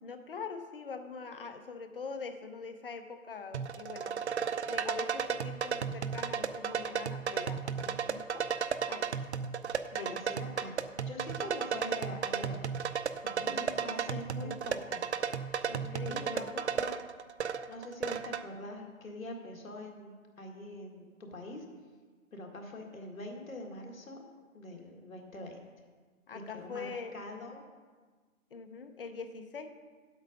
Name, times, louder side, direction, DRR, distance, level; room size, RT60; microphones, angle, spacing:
voice 1, 0.0-4.2 4.6-8.4 8.9-9.2 9.9-10.2 13.2-14.6 15.7-16.7 26.3-27.1 28.5-29.7, left 5 dB, 40° left, 8 dB, 0.7 m, -43 dB
sound 1, 3.5-18.4, right 7 dB, 55° right, 0.5 m, -34 dB
voice 2, 10.0-10.7 11.1-12.6 13.2-15.0 16.1-17.0 17.7-21.6 22.3-24.2 24.5-25.6 26.3-27.6, left 1 dB, 75° left, 2 dB, 1.8 m, -44 dB
8.1 x 7.9 x 5.2 m, 1.4 s
hypercardioid pair, 160°, 41 cm